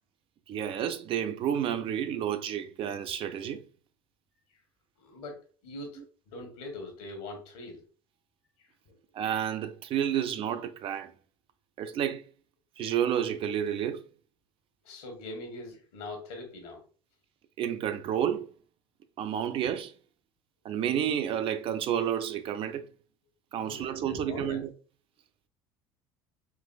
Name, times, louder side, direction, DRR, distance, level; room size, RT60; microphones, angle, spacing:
voice 1, 0.5-3.6 9.1-11.1 11.8-12.2 12.8-14.0 17.6-18.5 19.2-19.9 20.6-22.9 23.5-24.7, right 9 dB, 50° right, 0.4 m, -30 dB
voice 2, 5.0-6.0 6.3-7.8 8.6-8.9 14.8-16.8 23.6-24.6, left 2 dB, 70° left, 1.2 m, -42 dB
3.9 x 2.5 x 2.3 m
hypercardioid pair, 70°, 12 cm